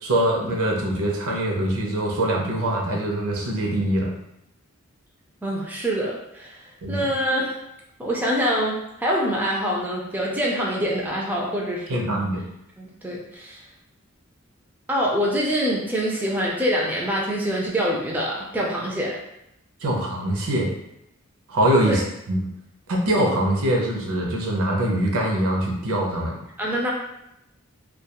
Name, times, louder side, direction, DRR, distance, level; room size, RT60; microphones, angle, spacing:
voice 1, 0.0-4.1 6.8-7.0 11.9-12.4 19.8-20.7 21.5-22.0 22.3-22.4 22.9-26.3, right 1 dB, 80° right, -1 dB, 0.6 m, -23 dB
voice 2, 5.4-6.6 6.9-7.6 8.0-12.1 12.8-13.6 14.9-19.1 21.8-22.0 26.6-26.9, equal, 10° right, -3 dB, 0.4 m, -25 dB
2.3 x 2.2 x 2.8 m, 0.82 s
head